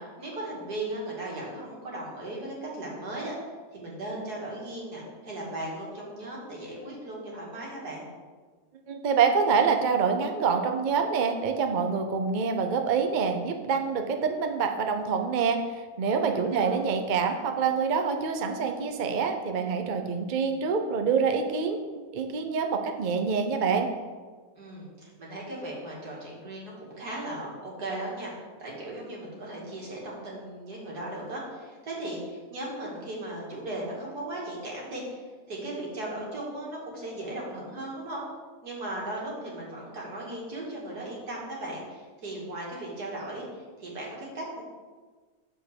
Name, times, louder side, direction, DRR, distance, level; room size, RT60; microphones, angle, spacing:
voice 1, 0.0-3.3 3.7-8.0 16.4-16.8 24.6-28.3 28.6-38.2 38.6-44.6, right 1 dB, 80° right, -4 dB, 2.6 m, -37 dB
voice 2, 8.9-21.9 22.1-23.9, right 5 dB, 50° right, 5 dB, 0.6 m, -26 dB
7.9 x 4.4 x 6.6 m, 1.5 s
omnidirectional pair, 1.7 m